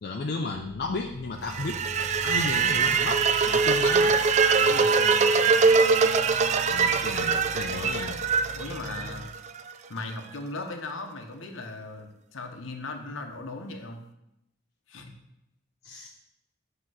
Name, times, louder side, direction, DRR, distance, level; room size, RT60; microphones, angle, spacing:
voice 1, 0.0-1.8 2.2-4.2 6.7-8.2 15.8-16.1, left 3 dB, 50° left, 1 dB, 0.5 m, -33 dB
sound 1, 0.5-9.2, equal, 75° right, 1.3 m, -43 dB
sound 2, 1.5-9.6, right 5 dB, 35° right, 0.3 m, -23 dB
voice 2, 4.6-5.1 8.6-9.3 9.9-14.0 14.9-15.1, left 2 dB, 80° left, 5 dB, 0.8 m, -37 dB
7.5 x 2.9 x 6.1 m, 0.85 s
head